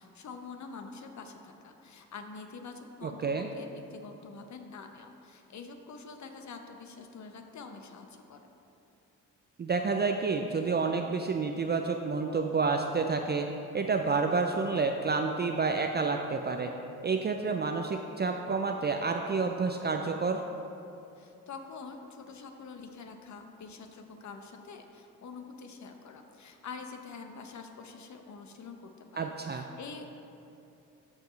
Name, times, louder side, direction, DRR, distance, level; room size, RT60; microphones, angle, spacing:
voice 1, 0.0-8.4 21.2-30.1, left 4 dB, 50° left, 5 dB, 0.9 m, -46 dB
voice 2, 3.0-3.5 9.6-13.5 13.7-16.7 17.0-20.4 29.2-29.6, right 4 dB, 30° right, 4 dB, 0.5 m, -29 dB
13.0 x 4.5 x 3.2 m, 2.7 s
supercardioid pair, 60°, 36 cm